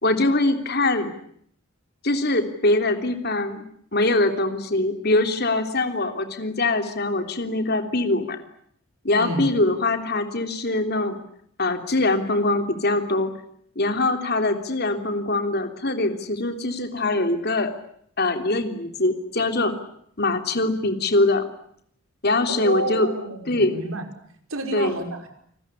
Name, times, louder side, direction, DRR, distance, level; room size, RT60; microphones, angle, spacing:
voice 1, 0.0-1.1 2.0-3.6 3.9-8.4 9.0-11.2 11.6-13.3 13.7-17.7 18.2-19.7 20.2-21.5 22.2-23.1 23.5-23.7 24.7-24.9, left 2 dB, 50° left, 7 dB, 3.3 m, -23 dB
voice 2, 9.2-9.5 22.5-24.1 24.5-25.3, right 2 dB, 80° right, 5 dB, 5.4 m, -29 dB
29.5 x 20.5 x 9.9 m, 0.68 s
head